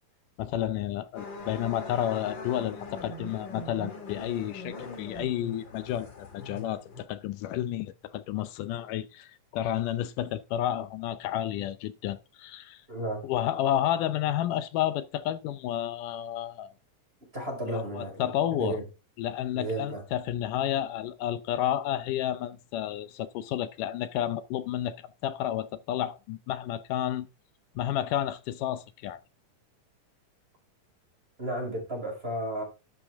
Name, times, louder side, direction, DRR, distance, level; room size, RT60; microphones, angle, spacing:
voice 1, 0.4-12.8 13.2-16.7 17.6-18.8 19.2-25.0 25.2-27.3 27.8-29.2, left 11 dB, 75° left, 2.2 m, -31 dB
sound 1, 1.2-7.0, left 3 dB, 35° left, 2.6 m, -41 dB
voice 2, 12.9-13.3 17.3-18.8 19.5-20.0 31.4-32.6, right 1 dB, 15° right, 5.5 m, -33 dB
12.0 x 8.7 x 3.5 m
omnidirectional pair, 4.0 m